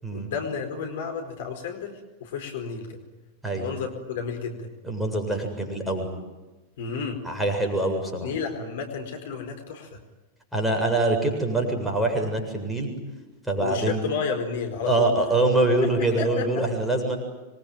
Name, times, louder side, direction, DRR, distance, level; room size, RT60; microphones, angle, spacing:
voice 1, 0.1-3.0 3.5-4.7 6.8-7.2 8.2-10.0 13.6-15.2 16.2-16.6, left 5 dB, 55° left, 4 dB, 4.6 m, -31 dB
voice 2, 4.8-6.1 7.2-8.3 10.5-12.9 13.5-14.1 14.8-17.2, right 2 dB, ahead, 2 dB, 7.6 m, -24 dB
27.0 x 23.5 x 9.2 m, 1.1 s
figure-of-eight pair, 90°, 0 cm